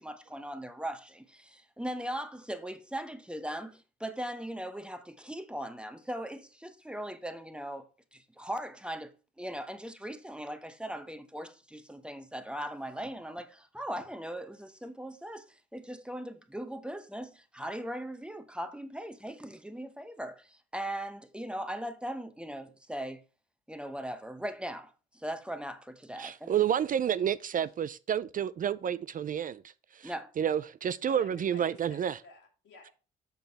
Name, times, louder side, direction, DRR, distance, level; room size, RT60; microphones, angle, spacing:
voice 1, 0.0-9.1 9.4-23.2 23.7-26.5 30.0-30.3, right 1 dB, 5° right, 0.9 m, -39 dB
voice 2, 26.2-29.6 30.0-32.2, right 9 dB, 45° right, 0.4 m, -30 dB
voice 3, 31.1-32.9, left 3 dB, 75° left, 2.2 m, -51 dB
7.0 x 5.9 x 4.1 m
cardioid pair, 90°, 20 cm